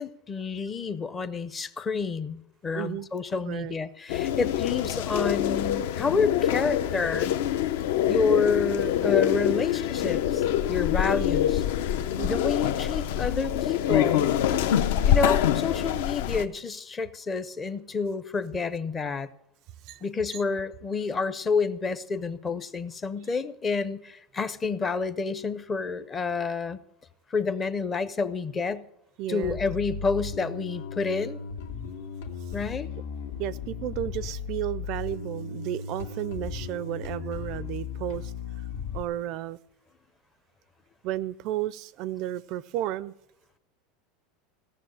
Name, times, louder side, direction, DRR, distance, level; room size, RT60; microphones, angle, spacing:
voice 1, 0.0-7.3 8.1-11.6 12.2-14.3 15.1-19.3 20.0-26.8 27.3-28.9 29.3-31.4 32.5-32.9, left 4 dB, 15° left, 0.5 m, -29 dB
voice 2, 2.7-3.1 3.5-3.8 12.2-12.4 19.8-20.1 20.3-20.4 29.2-29.6 32.5-32.6 33.4-38.3 38.9-39.6 41.0-43.1, right 13 dB, 40° right, 0.4 m, -33 dB
sound 1, 4.1-16.4, left 10 dB, 60° left, 0.7 m, -25 dB
Bass guitar, 29.4-39.0, left 5 dB, 80° left, 2.1 m, -36 dB
17.0 x 6.9 x 7.7 m
supercardioid pair, 180°, 0 cm